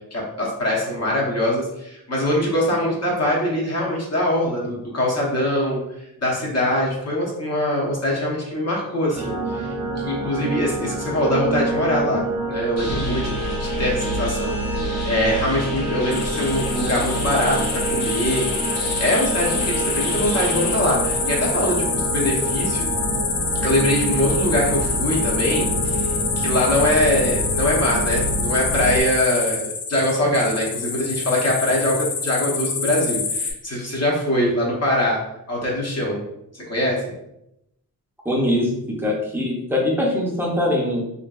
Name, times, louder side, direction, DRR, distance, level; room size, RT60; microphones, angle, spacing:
voice 1, 0.1-12.2 12.5-18.7 19.0-22.9 23.6-35.2 35.5-36.2 36.5-37.1, left 1 dB, 45° left, -3 dB, 0.7 m, -23 dB
sound 1, 9.1-29.0, right 2 dB, 60° right, 0.6 m, -27 dB
sound 2, 12.8-20.8, left 1 dB, 65° left, 1.0 m, -34 dB
sound 3, 16.1-33.5, left 5 dB, 85° left, 0.6 m, -26 dB
voice 2, 38.2-41.0, left 1 dB, 5° right, -3 dB, 0.5 m, -22 dB
2.7 x 2.5 x 2.3 m, 0.82 s
wide cardioid pair, 145°, 37 cm